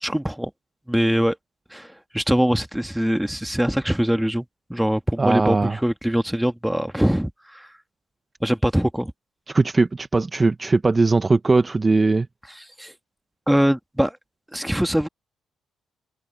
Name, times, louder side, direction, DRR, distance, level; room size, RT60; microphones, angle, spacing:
voice 1, 0.0-0.5 0.9-1.4 1.7-4.4 4.7-7.7 8.4-9.1 12.8-12.9 13.5-14.2 14.5-15.1, equal, 5° right, 1.5 m, -22 dB
voice 2, 5.2-5.8 9.5-12.3, right 3 dB, 25° right, 0.8 m, -19 dB
open air
cardioid pair, 90°, 0 cm